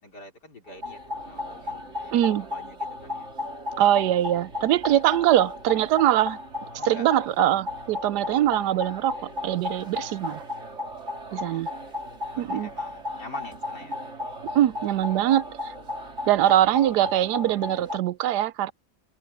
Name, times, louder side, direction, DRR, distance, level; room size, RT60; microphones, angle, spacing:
voice 1, 0.0-2.2 2.4-3.3 5.2-5.3 6.8-7.1 11.3-12.0 12.3-14.0, left 3 dB, 75° left, 5.2 m, -46 dB
sound 1, 0.7-18.0, left 2 dB, 45° right, 3.0 m, -35 dB
voice 2, 2.1-2.5 3.8-6.4 6.8-9.2 9.4-10.4 11.3-11.7 12.4-12.7 14.5-15.7 16.3-18.7, right 12 dB, 85° right, 1.2 m, -22 dB
omnidirectional pair, 1.8 m